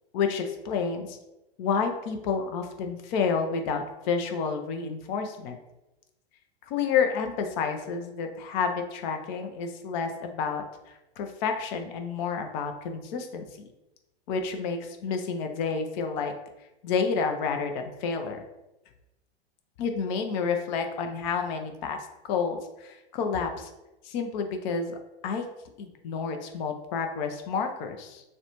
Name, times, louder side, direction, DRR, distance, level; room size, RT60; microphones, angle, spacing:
voice 1, 0.1-1.2 1.6-5.6 6.7-10.6 11.2-13.7 14.3-16.3 16.8-18.4 19.8-22.0 22.3-23.7 24.0-25.0 25.2-25.5 25.8-28.2, left 5 dB, 50° left, 5 dB, 0.6 m, -29 dB
6.5 x 2.2 x 2.9 m, 0.96 s
figure-of-eight pair, 100°, 31 cm